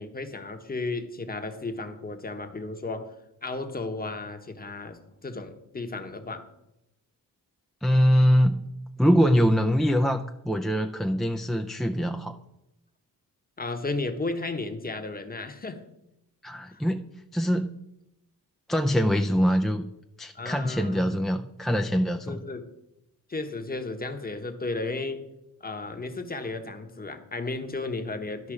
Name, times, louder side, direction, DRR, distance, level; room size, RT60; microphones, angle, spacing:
voice 1, 0.0-3.1 3.4-6.5 13.6-15.8 16.7-16.8 20.3-21.2 22.3-22.7 23.3-25.3 25.6-28.5, left 3 dB, 25° left, 7 dB, 1.0 m, -34 dB
voice 2, 7.8-8.7 9.0-12.4 16.4-17.7 18.7-19.9 20.2-22.4, equal, ahead, 3 dB, 0.4 m, -23 dB
12.0 x 5.5 x 4.9 m, 0.87 s
wide cardioid pair, 110°, 34 cm